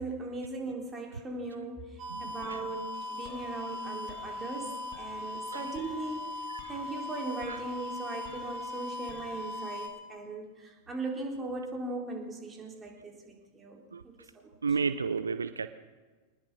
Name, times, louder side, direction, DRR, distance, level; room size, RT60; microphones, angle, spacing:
voice 1, 0.0-14.6, right 2 dB, 15° right, 4.0 m, -39 dB
sound 1, 2.0-9.9, left 2 dB, 35° right, 3.8 m, -39 dB
voice 2, 2.1-2.6 5.5-5.7 7.5-7.6 13.9-14.0 14.6-15.7, right 5 dB, 75° right, 0.7 m, -32 dB
23.0 x 20.0 x 6.2 m
figure-of-eight pair, 90°, 0 cm